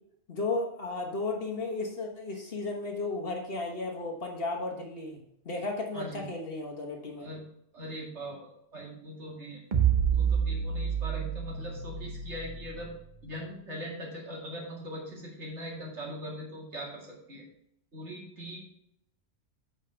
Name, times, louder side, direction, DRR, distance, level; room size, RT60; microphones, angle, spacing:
voice 1, 0.3-5.2 5.4-7.3, left 3 dB, 50° left, 1 dB, 1.5 m, -34 dB
voice 2, 5.9-6.3 7.2-7.4 7.7-9.6 10.1-12.9 13.2-17.4 17.9-18.6, equal, 65° right, -2 dB, 2.5 m, -41 dB
sound 1, 9.7-13.1, right 8 dB, 45° right, 0.9 m, -29 dB
7.3 x 5.4 x 5.7 m, 0.76 s
omnidirectional pair, 1.3 m